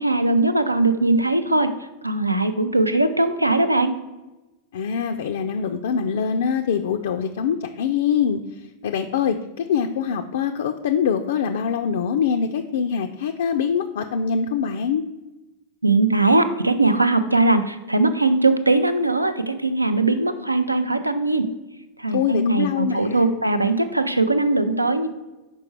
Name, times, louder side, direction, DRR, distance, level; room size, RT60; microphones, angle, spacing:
voice 1, 0.0-1.7 2.0-3.9 15.8-21.5 22.0-25.1, right 2 dB, 85° right, 9 dB, 0.4 m, -20 dB
voice 2, 4.7-15.0 22.1-23.3, left 7 dB, 60° left, 4 dB, 0.3 m, -24 dB
6.1 x 4.7 x 4.4 m, 1.0 s
figure-of-eight pair, 90°, 0 cm